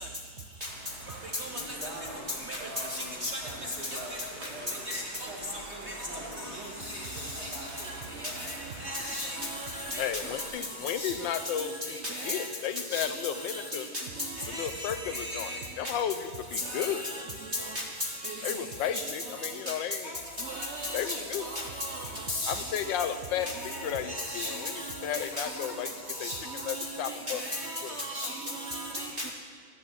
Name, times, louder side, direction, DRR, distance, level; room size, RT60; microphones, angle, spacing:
sound 1, 0.6-10.5, right 1 dB, 35° right, 2.3 m, -46 dB
voice 1, 1.4-8.5, right 1 dB, 65° right, -3 dB, 2.7 m, -44 dB
voice 2, 2.9-3.4 3.9-4.0 4.4-4.5 4.9-5.3 6.9-7.5 8.2-8.6 8.8-10.1 11.0-11.1 11.9-12.5 12.9-13.1 13.5-14.0 14.4-15.6 16.6-17.2 17.5-17.8 18.2-18.4 18.9-19.0 20.4-22.7 24.1-25.4 26.2-26.4 26.7-29.3, left 1 dB, 85° right, 3 dB, 0.6 m, -35 dB
voice 3, 10.0-12.0 12.2-13.9 14.5-15.5 15.8-17.0 18.4-20.1 20.9-21.5 22.5-24.7 25.0-25.9 26.2-26.3 26.7-27.4 27.8-27.9 28.2-28.3, left 9 dB, 85° left, 10 dB, 1.4 m, -33 dB
sound 2, 20.0-26.9, left 2 dB, 55° left, 1.6 m, -48 dB
14.0 x 6.4 x 6.1 m, 2.1 s
omnidirectional pair, 2.0 m